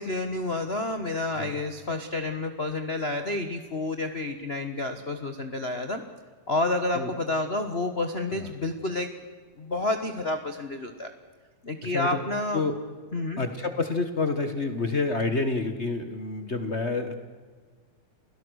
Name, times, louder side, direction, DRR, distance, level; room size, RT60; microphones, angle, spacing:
voice 1, 0.0-6.0 6.5-9.1 9.6-11.1 11.6-12.6 13.1-13.4, left 2 dB, 85° left, 7 dB, 0.5 m, -29 dB
voice 2, 11.8-12.2 12.5-12.7 13.4-17.2, left 3 dB, 40° left, 8 dB, 1.0 m, -28 dB
29.0 x 17.5 x 6.4 m, 1.5 s
omnidirectional pair, 3.4 m